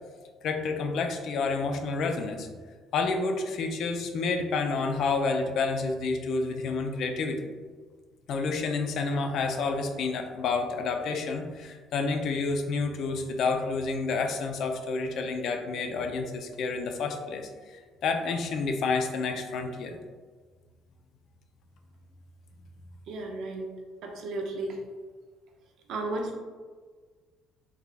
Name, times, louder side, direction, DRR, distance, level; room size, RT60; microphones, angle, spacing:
voice 1, 0.4-2.5 2.9-7.5 8.3-20.0, left 4 dB, 65° left, 4 dB, 0.5 m, -29 dB
voice 2, 23.1-23.7 24.0-24.8 25.9-26.4, right 2 dB, 70° right, 1 dB, 0.6 m, -33 dB
3.6 x 3.3 x 2.4 m, 1.5 s
supercardioid pair, 80°, 0 cm